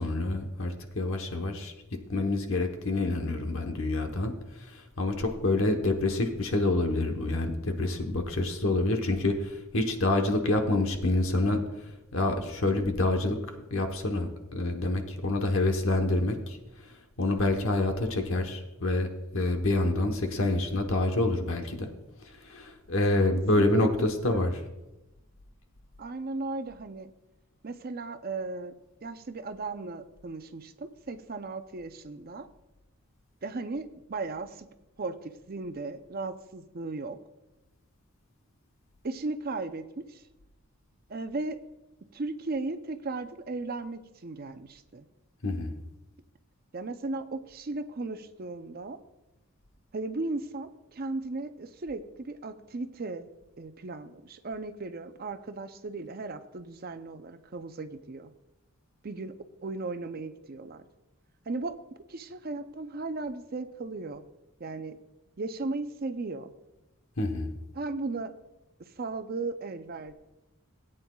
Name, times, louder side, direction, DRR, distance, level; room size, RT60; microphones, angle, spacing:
voice 1, 0.0-1.7 2.1-4.3 4.7-11.6 12.1-13.4 13.7-16.6 17.2-19.1 19.3-21.9 22.4-24.5 45.4-45.7 67.2-67.5, left 2 dB, 60° left, 4 dB, 1.1 m, -27 dB
voice 2, 24.2-24.5 26.0-27.1 27.6-28.7 29.0-32.5 33.4-34.7 35.0-37.2 39.0-40.2 41.1-41.6 42.1-45.1 46.7-49.0 49.9-53.3 53.6-58.3 59.0-59.3 59.6-60.9 61.5-61.8 62.1-64.2 64.6-65.0 65.4-66.5 67.7-68.3 68.9-70.1, right 3 dB, 40° right, 9 dB, 0.5 m, -36 dB
17.5 x 8.8 x 2.3 m, 0.98 s
head